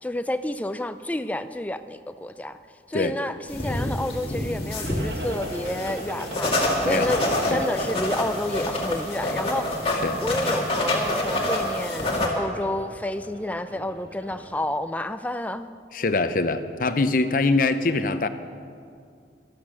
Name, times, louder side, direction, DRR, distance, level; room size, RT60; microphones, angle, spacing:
voice 1, 0.0-2.6 2.9-7.2 7.5-9.7 10.2-15.7, left 1 dB, 10° left, 11 dB, 0.4 m, -30 dB
sound 1, 3.5-12.3, left 1 dB, 30° left, 2.1 m, -27 dB
sound 2, 4.8-14.5, right 1 dB, 65° right, 1.5 m, -39 dB
voice 2, 15.9-18.3, left 3 dB, 50° left, 10 dB, 0.7 m, -23 dB
13.5 x 12.5 x 6.3 m, 2.3 s
head